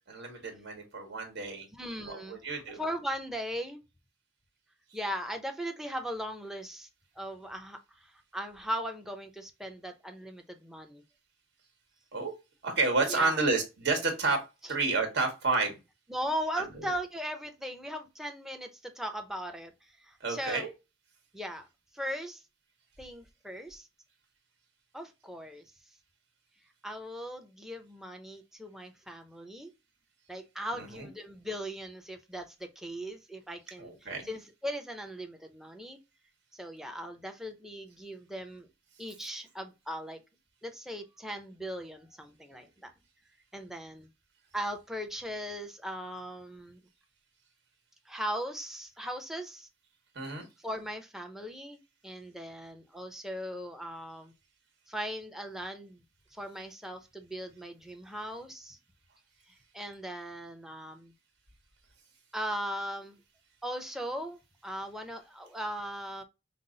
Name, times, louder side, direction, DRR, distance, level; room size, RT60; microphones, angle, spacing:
voice 1, 0.1-1.7 2.1-2.8 12.1-12.3 12.6-14.4 14.7-15.8 16.5-16.7 20.2-20.7 30.7-31.1 33.8-34.3 50.1-50.4, right 3 dB, 60° right, 1.5 m, -30 dB
voice 2, 1.7-3.8 4.9-6.9 7.2-11.0 13.0-13.4 14.6-14.8 16.1-19.7 20.1-20.7 21.3-21.7 21.9-22.4 23.0-23.9 24.9-25.6 26.8-29.7 30.3-36.0 36.5-38.7 39.0-40.2 40.6-42.9 43.5-44.1 44.5-46.8 48.1-49.7 50.6-54.3 54.9-56.0 56.3-58.8 59.7-61.1 62.3-63.2 63.6-66.2, equal, ahead, 0.6 m, -38 dB
5.8 x 2.0 x 3.8 m
head